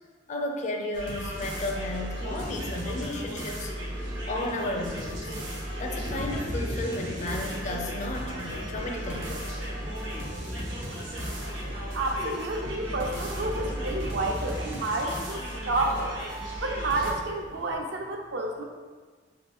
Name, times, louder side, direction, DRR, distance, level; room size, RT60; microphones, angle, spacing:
voice 1, 0.3-3.7 4.3-5.3 5.8-9.6, left 1 dB, 40° left, 2 dB, 0.4 m, -33 dB
sound 1, 0.9-17.1, equal, 80° right, 1.0 m, -35 dB
sound 2, 1.3-17.8, left 1 dB, 80° left, 0.7 m, -42 dB
voice 2, 11.9-16.1 16.6-18.6, right 2 dB, 65° right, 2 dB, 0.5 m, -30 dB
3.7 x 2.5 x 4.2 m, 1.4 s
head